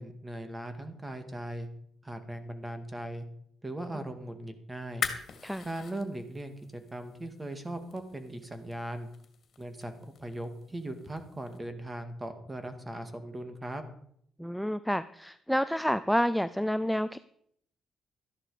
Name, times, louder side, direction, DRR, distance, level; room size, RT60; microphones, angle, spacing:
voice 1, 0.0-1.7 2.0-3.3 3.6-5.1 5.6-9.1 9.6-13.8, right 1 dB, 15° right, 8 dB, 2.1 m, -39 dB
sound 1, 4.8-11.6, left 7 dB, 60° left, 2.2 m, -43 dB
voice 2, 14.4-17.2, equal, ahead, 13 dB, 0.5 m, -29 dB
13.5 x 11.0 x 5.0 m, 0.67 s
cardioid pair, 90°, 0 cm